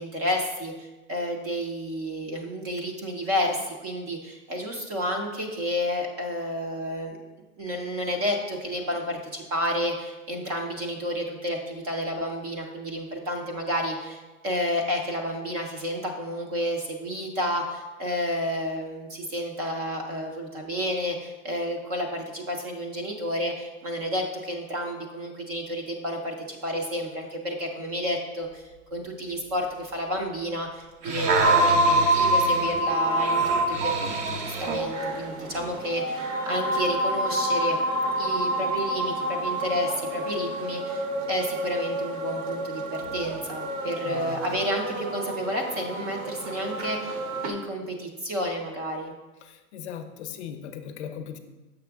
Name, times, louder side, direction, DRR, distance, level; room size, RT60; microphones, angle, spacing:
voice 1, 0.0-7.2 7.6-28.6 28.9-37.8 38.2-49.1, equal, 25° right, 2 dB, 0.5 m, -31 dB
sound 1, 30.8-34.9 35.5-35.7, right 3 dB, 85° right, 1.1 m, -29 dB
sound 2, 31.4-47.5, right 1 dB, 60° right, 1.0 m, -27 dB
voice 2, 44.1-44.4 49.4-51.4, left 8 dB, 45° left, 7 dB, 0.6 m, -38 dB
6.8 x 5.6 x 3.4 m, 1.1 s
hypercardioid pair, 150°, 46 cm